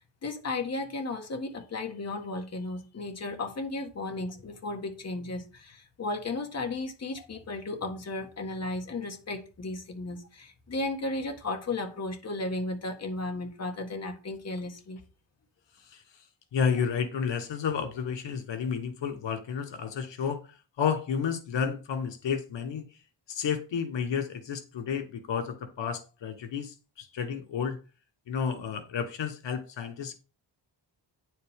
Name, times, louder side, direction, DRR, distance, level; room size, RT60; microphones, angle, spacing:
voice 1, 0.2-15.0, left 2 dB, 35° left, 1.7 m, -34 dB
voice 2, 15.8-16.2 16.5-22.8 23.3-27.8 28.3-30.2, left 6 dB, 75° left, 1.4 m, -31 dB
9.4 x 7.8 x 3.6 m
wide cardioid pair, 160°, 44 cm